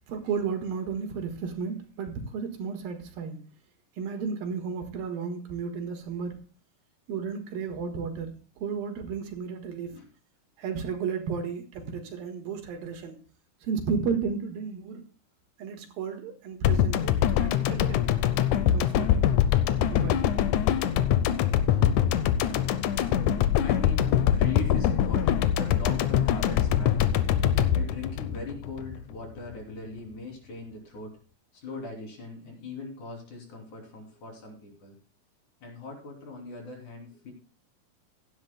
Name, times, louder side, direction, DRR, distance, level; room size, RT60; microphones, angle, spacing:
voice 1, 0.1-3.4 4.0-6.4 7.1-9.9 10.6-13.2 13.6-15.0 15.6-18.1 18.5-19.2 19.9-20.2, right 5 dB, 75° right, 3.2 m, -33 dB
sound 1, 16.6-29.0 29.3-29.4, left 10 dB, 80° left, 1.7 m, -24 dB
voice 2, 23.6-27.3 27.7-31.2 31.5-35.0 35.6-37.3, left 3 dB, 55° left, 4.3 m, -40 dB
16.0 x 11.5 x 2.2 m
omnidirectional pair, 4.3 m